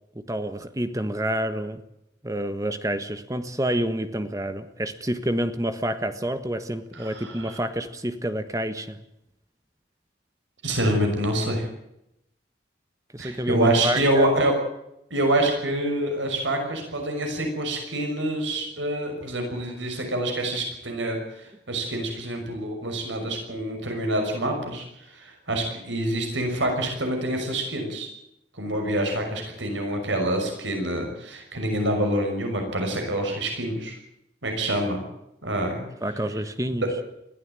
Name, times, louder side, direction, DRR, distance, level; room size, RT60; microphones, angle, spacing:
voice 1, 0.1-1.8 2.2-9.0 13.1-14.3 36.0-36.9, right 1 dB, 20° right, 1.4 m, -28 dB
voice 2, 6.9-7.6 10.6-11.7 13.2-14.5 15.1-28.1 28.6-34.0 34.4-35.0 35.4-35.8, right 1 dB, 85° right, 6.2 m, -26 dB
21.5 x 15.5 x 9.1 m
head